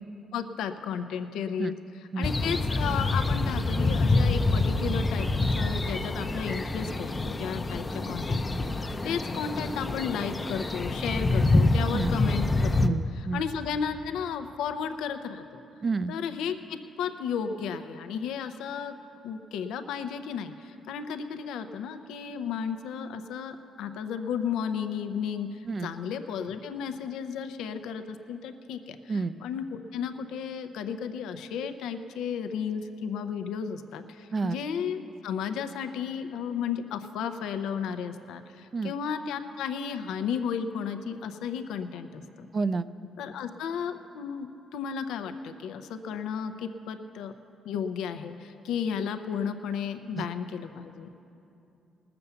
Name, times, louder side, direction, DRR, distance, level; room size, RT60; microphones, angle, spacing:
voice 1, 0.3-1.7 2.2-5.3 5.5-13.0 13.3-15.6 16.1-18.9 19.2-42.5 43.2-47.4 47.6-51.1, left 7 dB, 85° left, 8 dB, 0.6 m, -33 dB
sound 1, 2.2-12.9, left 2 dB, 25° left, 0.6 m, -26 dB
voice 2, 12.8-13.4 15.8-16.1 25.6-25.9 29.1-29.4 34.3-34.6 38.7-38.9 42.5-42.9 50.2-50.3, right 4 dB, 40° right, 13 dB, 0.4 m, -29 dB
19.0 x 6.9 x 6.9 m, 2.8 s
cardioid pair, 90°, 0 cm